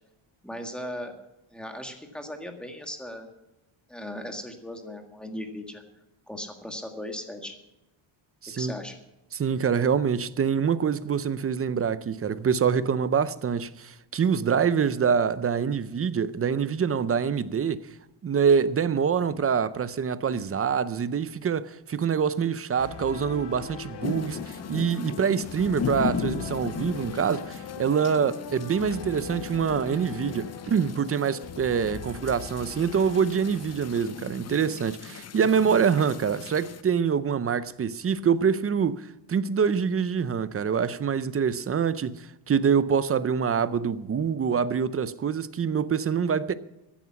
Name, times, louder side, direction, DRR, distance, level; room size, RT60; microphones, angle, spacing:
voice 1, 0.4-1.1 1.5-3.3 3.9-5.8 6.3-7.5 8.6-9.0, left 1 dB, ahead, 1.7 m, -37 dB
voice 2, 8.4-8.7 9.3-17.9 18.2-46.5, right 6 dB, 30° right, 0.5 m, -25 dB
sound 1, 22.8-34.8, left 6 dB, 55° left, 1.6 m, -42 dB
sound 2, 24.0-36.8, left 7 dB, 35° left, 0.5 m, -37 dB
15.0 x 11.0 x 5.8 m
wide cardioid pair, 165°, 50 cm